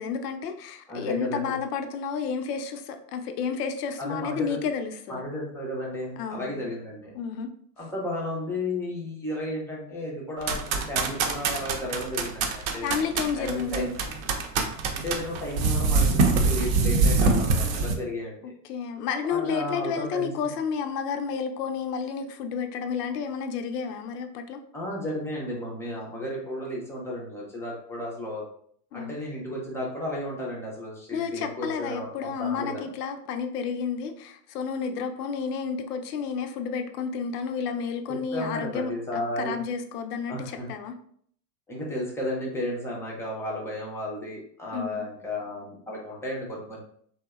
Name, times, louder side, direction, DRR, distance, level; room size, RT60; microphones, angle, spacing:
voice 1, 0.0-5.2 6.2-6.7 7.1-7.5 12.8-13.8 18.7-24.6 28.9-29.1 31.1-40.9 44.7-45.1, left 6 dB, 75° left, 7 dB, 0.5 m, -31 dB
voice 2, 0.9-1.5 4.0-4.6 5.1-7.1 7.8-12.9 13.3-13.9 14.9-18.4 19.3-20.3 24.7-28.4 28.9-32.9 38.1-39.6 40.3-40.7 41.7-46.8, left 1 dB, 5° left, -3 dB, 0.4 m, -33 dB
sound 1, 10.4-17.9, right 4 dB, 55° right, 0.6 m, -24 dB
2.6 x 2.1 x 2.3 m, 0.62 s
hypercardioid pair, 95°, 48 cm